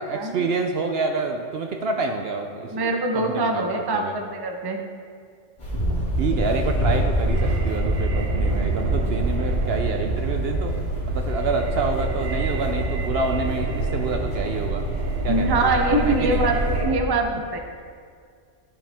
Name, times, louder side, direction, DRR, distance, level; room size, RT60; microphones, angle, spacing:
voice 1, 0.0-4.1 6.2-10.8 11.0-14.8 15.2-15.7 16.1-16.4 17.3-17.4, right 4 dB, 65° right, 4 dB, 0.7 m, -28 dB
voice 2, 2.7-4.9 15.3-17.6, right 2 dB, 25° right, 3 dB, 0.5 m, -23 dB
sound 1, 5.6-16.8, equal, 40° left, 2.6 m, -26 dB
sound 2, 7.3-17.0, right 4 dB, 80° right, 1.1 m, -31 dB
12.5 x 5.5 x 3.4 m, 2.1 s
omnidirectional pair, 1.3 m